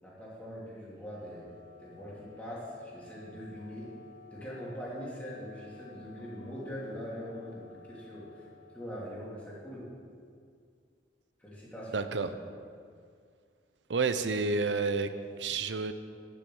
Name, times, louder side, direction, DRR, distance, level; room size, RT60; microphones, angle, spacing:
voice 1, 0.0-1.5 1.8-3.9 4.3-8.5 8.7-9.9 11.4-12.4, equal, 10° left, -7 dB, 3.1 m, -42 dB
Wind instrument woodwind instrument, 0.9-10.2, left 3 dB, 45° right, 1.9 m, -55 dB
voice 2, 11.9-12.3 13.9-15.1 15.4-15.9, right 4 dB, 90° right, 11 dB, 0.7 m, -29 dB
12.0 x 6.3 x 7.9 m, 2.2 s
head